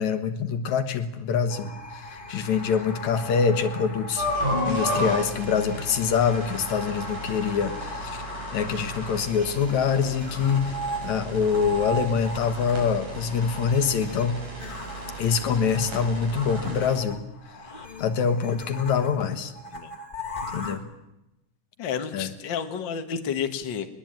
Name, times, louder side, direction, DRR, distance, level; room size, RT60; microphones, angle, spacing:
voice 1, 0.0-4.3 4.7-8.2 8.5-14.4 15.2-17.2 18.0-19.5 20.5-20.8 22.1-22.3, left 6 dB, 70° left, 9 dB, 2.7 m, -25 dB
sound 1, 1.5-20.7, equal, 15° left, 2.6 m, -38 dB
sound 2, 4.2-16.9, equal, 75° right, 7.9 m, -34 dB
voice 2, 21.8-23.9, left 7 dB, 45° left, 7 dB, 1.8 m, -30 dB
21.5 x 21.5 x 9.0 m, 0.93 s
omnidirectional pair, 3.6 m